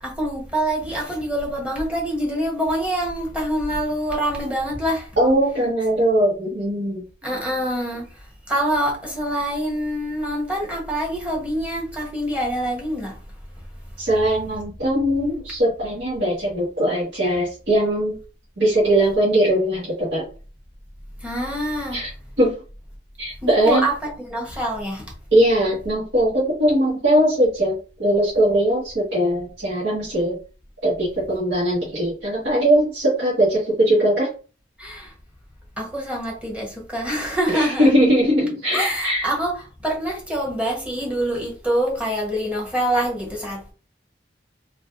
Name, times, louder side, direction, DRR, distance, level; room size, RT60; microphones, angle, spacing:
voice 1, 0.0-5.1 7.2-13.2 21.2-22.0 23.4-25.1 34.8-35.1 35.8-37.9 38.7-43.7, right 1 dB, 5° right, 1.2 m, -25 dB
voice 2, 5.2-7.0 14.0-18.2 18.6-20.2 21.9-22.1 22.4-22.6 23.2-23.8 25.3-30.4 30.8-34.3 37.5-39.3, right 1 dB, 80° right, 1.7 m, -20 dB
3.4 x 2.9 x 2.6 m
head